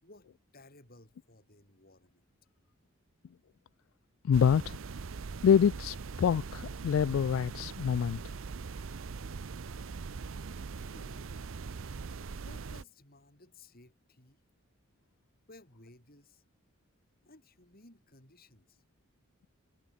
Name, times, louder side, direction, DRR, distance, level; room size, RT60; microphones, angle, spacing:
voice 1, 0.0-2.3 10.8-11.4 12.3-14.4 15.5-16.4 17.2-18.8, left 2 dB, 45° left, 7.0 m, -58 dB
voice 2, 4.2-4.8 5.4-8.2, left 7 dB, 70° left, 0.3 m, -26 dB
sound 1, 4.3-12.8, right 4 dB, 70° right, 0.6 m, -41 dB
head